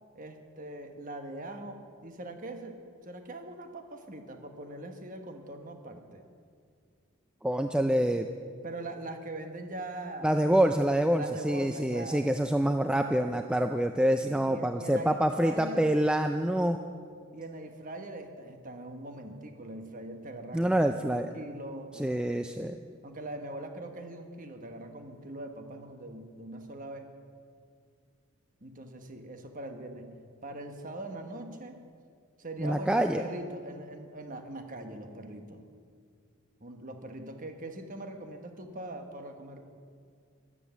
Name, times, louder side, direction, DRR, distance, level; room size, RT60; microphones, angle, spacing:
voice 1, 0.1-6.2 8.6-10.4 11.2-12.4 14.2-15.8 17.3-22.2 23.0-27.1 28.6-30.1 30.4-31.8 32.4-35.7 36.6-39.7, right 1 dB, 40° right, 5 dB, 1.3 m, -42 dB
voice 2, 7.4-8.3 10.2-16.8 20.5-21.3 21.9-22.8 32.6-33.2, right 1 dB, 5° right, 6 dB, 0.3 m, -26 dB
13.5 x 11.0 x 6.9 m, 2.2 s
head